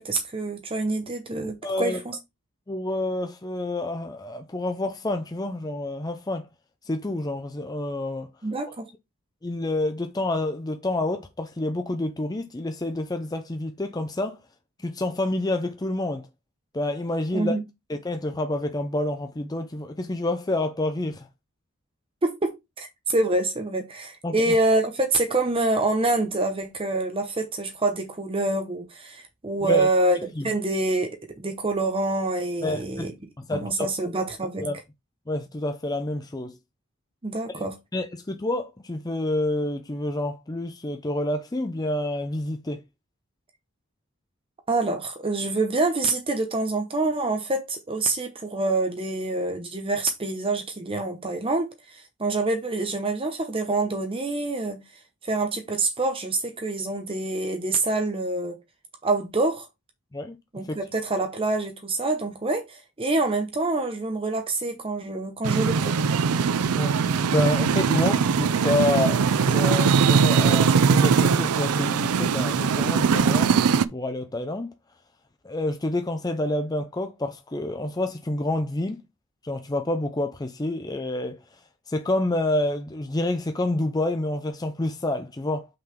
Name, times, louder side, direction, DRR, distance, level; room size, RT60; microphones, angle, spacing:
voice 1, 0.0-2.2 8.4-8.9 17.3-17.6 22.2-33.1 33.5-34.7 37.2-37.7 44.7-54.8 55.2-58.6 59.0-59.7 60.5-66.0, right 2 dB, 25° right, 0.8 m, -26 dB
voice 2, 1.4-2.0 2.7-6.5 6.9-8.3 9.4-14.4 14.8-16.3 16.7-17.6 17.9-21.3 24.2-24.5 29.6-29.9 30.4-30.5 32.6-33.1 33.4-33.9 34.6-34.8 35.3-36.6 37.5-37.6 37.9-42.8 60.1-60.4 66.7-66.9 67.3-73.6 73.9-74.7 75.4-79.0 79.4-81.4 81.9-85.7, left 1 dB, 15° left, 0.5 m, -28 dB
sound 1, 65.4-73.9, right 6 dB, 85° right, 0.5 m, -21 dB
5.6 x 3.9 x 5.1 m
head